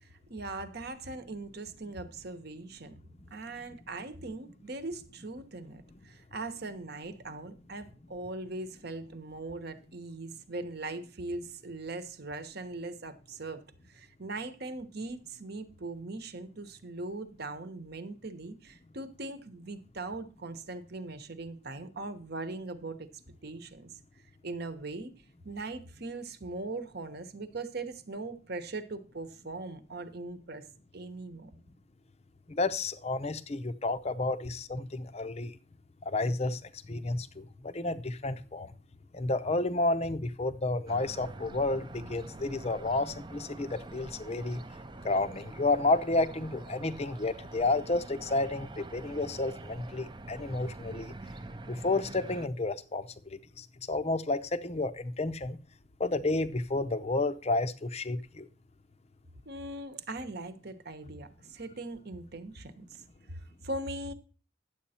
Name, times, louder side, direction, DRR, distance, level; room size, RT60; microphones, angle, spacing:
voice 1, 0.0-3.0 3.3-13.6 13.9-23.1 23.4-23.9 24.4-25.1 25.4-30.6 30.9-31.5 59.5-64.1, right 2 dB, 50° right, 1.0 m, -40 dB
voice 2, 32.5-35.6 36.1-36.6 36.9-38.7 39.1-44.6 45.0-51.1 51.7-55.6 56.0-58.5, left 2 dB, 30° left, 0.6 m, -31 dB
sound 1, 40.9-52.5, right 2 dB, 20° right, 0.5 m, -45 dB
10.0 x 7.8 x 4.3 m
head